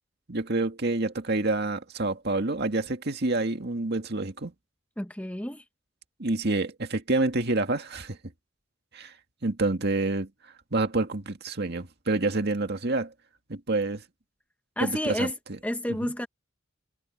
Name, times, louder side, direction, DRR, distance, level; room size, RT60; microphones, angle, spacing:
voice 1, 0.3-4.5 6.2-8.2 8.9-9.1 9.4-10.3 10.7-13.1 13.5-14.0 14.8-15.3, right 2 dB, 55° right, 2.0 m, -27 dB
voice 2, 5.0-5.6 14.8-15.3 15.6-16.3, left 1 dB, 5° left, 1.0 m, -30 dB
head